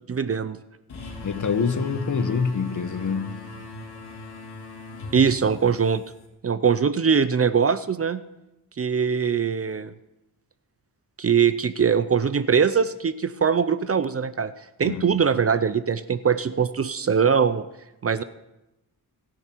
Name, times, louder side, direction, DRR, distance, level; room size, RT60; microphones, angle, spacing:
voice 1, 0.1-0.6 5.1-6.0 6.4-8.2 8.8-9.9 11.2-14.5 14.8-17.7 18.0-18.2, right 6 dB, 35° right, 0.6 m, -22 dB
sound 1, 0.9-6.3, left 1 dB, 80° left, 3.7 m, -39 dB
voice 2, 1.2-3.4 14.8-15.0, left 5 dB, 50° left, 1.2 m, -26 dB
28.5 x 10.5 x 4.6 m
wide cardioid pair, 145°, 39 cm